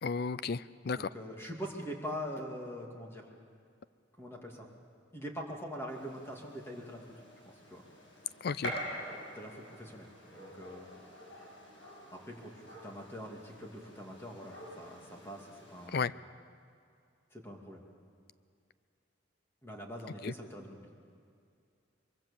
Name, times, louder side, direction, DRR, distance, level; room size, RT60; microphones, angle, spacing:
voice 1, 0.0-1.1 8.4-8.7 15.9-16.1 20.2-20.3, left 5 dB, 55° left, 17 dB, 0.5 m, -33 dB
voice 2, 0.9-3.3 4.2-4.7 5.1-7.1 7.5-7.8 9.3-10.1 10.3-10.9 12.1-16.2 17.3-17.9 19.6-20.9, equal, 15° left, 0 dB, 2.5 m, -43 dB
Gunshot gunfire, 5.9-15.9, equal, 80° left, 6.5 m, -47 dB
23.0 x 23.0 x 7.3 m, 2.3 s
head